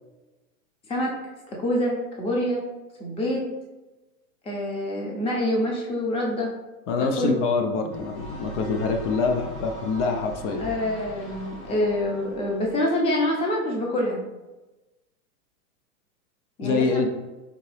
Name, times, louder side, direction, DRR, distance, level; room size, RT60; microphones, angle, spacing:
voice 1, 1.5-2.6 3.0-3.5 4.4-6.5 7.0-7.4 10.6-14.2 16.6-17.1, left 1 dB, 15° left, -2 dB, 0.7 m, -26 dB
voice 2, 6.9-10.7 16.6-17.1, left 4 dB, 55° left, 4 dB, 0.7 m, -25 dB
sound 1, 7.9-12.8, equal, 30° left, 1.0 m, -40 dB
5.1 x 2.9 x 3.2 m, 1.1 s
hypercardioid pair, 130°, 44 cm